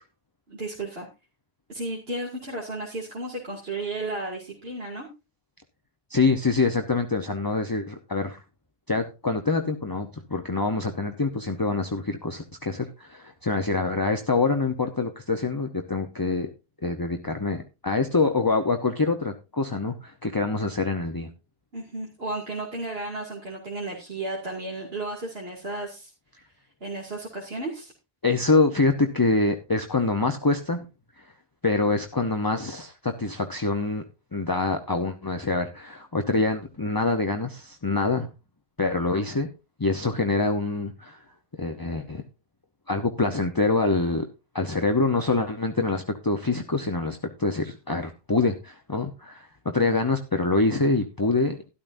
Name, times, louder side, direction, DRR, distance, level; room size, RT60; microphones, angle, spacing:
voice 1, 0.5-1.1 1.7-5.1 21.7-26.1 26.8-27.9, right 2 dB, 40° right, -2 dB, 2.6 m, -33 dB
voice 2, 6.1-8.4 8.9-16.5 16.8-21.3 28.2-30.8 31.2-31.3 31.6-34.0 34.3-38.3 38.8-39.5 39.8-41.2 41.6-42.2 42.9-44.3 44.5-51.7, left 3 dB, 20° left, 5 dB, 0.7 m, -25 dB
12.5 x 12.5 x 2.6 m, 0.27 s
omnidirectional pair, 1.6 m